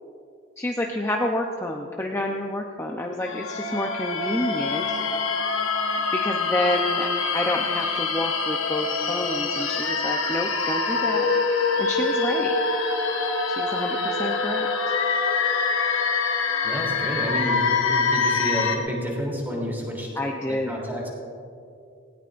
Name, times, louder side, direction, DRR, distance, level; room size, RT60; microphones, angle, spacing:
voice 1, 0.6-5.0 6.1-11.3 11.8-12.5 13.5-14.9 20.2-20.8, left 1 dB, 15° left, 1 dB, 0.7 m, -29 dB
sound 1, 3.2-18.8, left 4 dB, 70° left, 1.2 m, -25 dB
voice 2, 16.6-20.1 20.5-21.1, equal, 10° right, -3 dB, 3.2 m, -30 dB
19.0 x 17.5 x 2.6 m, 2.5 s
head